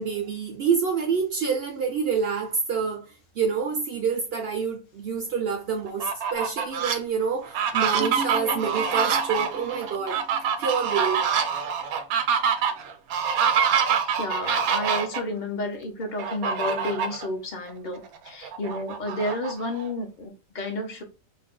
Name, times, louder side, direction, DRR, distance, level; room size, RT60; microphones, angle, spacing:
voice 1, 0.0-3.1 3.4-10.2 10.6-11.2, right 6 dB, 65° right, 0.6 m, -27 dB
Fowl, 5.9-7.0 7.4-15.2 16.2-17.3 17.7-17.8 18.2-19.9, right 7 dB, 85° right, 1.0 m, -26 dB
sound 1, 8.0-11.6, right 2 dB, 10° right, 0.4 m, -39 dB
voice 2, 14.1-21.0, left 1 dB, 50° left, 0.6 m, -31 dB
2.6 x 2.2 x 3.6 m
omnidirectional pair, 1.5 m